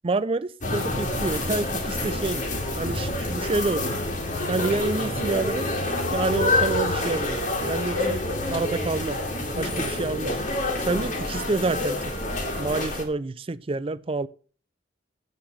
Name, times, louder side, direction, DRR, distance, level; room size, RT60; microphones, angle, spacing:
voice 1, 0.0-2.4 2.8-3.9 4.5-5.7 6.1-7.4 7.7-8.2 8.5-9.2 9.6-10.4 10.8-12.1 12.6-14.3, right 3 dB, 30° right, 0.4 m, -28 dB
sound 1, 0.6-13.0, left 2 dB, 45° left, 2.5 m, -27 dB
8.7 x 5.8 x 7.6 m
head